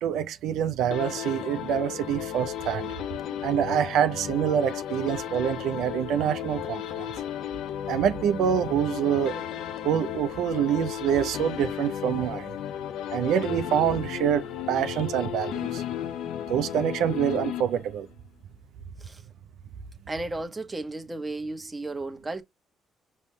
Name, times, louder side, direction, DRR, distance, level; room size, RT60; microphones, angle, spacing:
voice 1, 0.0-2.9 3.4-7.1 7.9-9.4 9.8-12.6 13.1-15.8 16.5-18.1, right 9 dB, 85° right, 0.6 m, -26 dB
sound 1, 0.9-18.1, left 10 dB, 85° left, 0.6 m, -34 dB
voice 2, 20.1-22.4, right 2 dB, 20° right, 1.1 m, -34 dB
5.3 x 3.1 x 3.2 m
cardioid pair, 90°, 0 cm